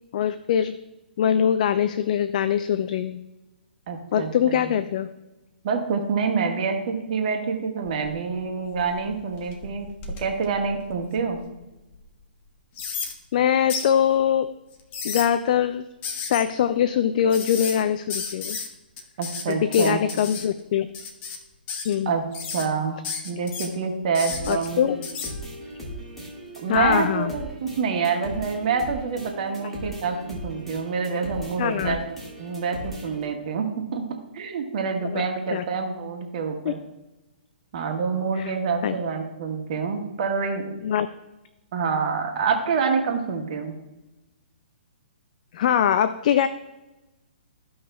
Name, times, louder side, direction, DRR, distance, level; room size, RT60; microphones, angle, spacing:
voice 1, 0.1-0.8 1.2-3.2 4.1-5.1 13.3-14.5 15.0-15.8 16.2-18.6 19.5-20.9 21.9-22.1 24.5-25.0 26.7-27.3 31.6-32.0 35.1-35.3 35.5-35.6 36.6-36.7 38.4-38.5 38.8-38.9 40.8-41.1 45.5-46.5, left 9 dB, 50° left, 12 dB, 0.4 m, -22 dB
voice 2, 3.9-4.6 5.6-9.9 10.2-11.4 19.2-20.0 22.0-22.2 22.5-23.0 23.2-24.9 26.6-34.0 34.3-36.8 37.7-40.8 41.7-43.7, right 5 dB, 45° right, 3 dB, 1.3 m, -27 dB
sound 1, 7.9-8.4 8.8-11.4 11.9-12.0 12.8-13.1 13.7-13.9 14.7-15.3 16.0-16.4 17.3-17.8 18.1-18.7 19.0-20.5 20.9-21.4 21.7-22.0 22.3-22.7 23.0-23.7 24.1-24.7 25.0-25.3, left 5 dB, 30° left, 1.0 m, -33 dB
sound 2, 24.3-33.3, right 1 dB, 5° left, 2.0 m, -38 dB
14.0 x 5.4 x 2.3 m, 1.0 s
figure-of-eight pair, 125°, 5 cm